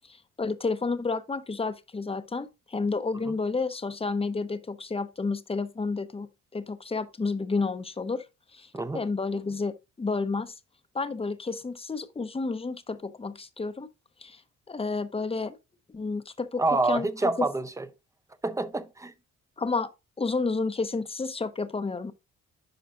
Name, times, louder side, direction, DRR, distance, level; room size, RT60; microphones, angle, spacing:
voice 1, 0.1-8.2 8.5-10.5 10.9-13.9 14.2-14.4 14.7-15.6 15.9-16.6 16.9-17.1 17.4-17.5 19.6-19.9 20.2-22.1, left 4 dB, 20° left, 0.8 m, -30 dB
voice 2, 16.6-17.9 18.4-19.1, right 2 dB, 10° right, 0.7 m, -27 dB
10.5 x 4.9 x 2.5 m
cardioid pair, 90°, 30 cm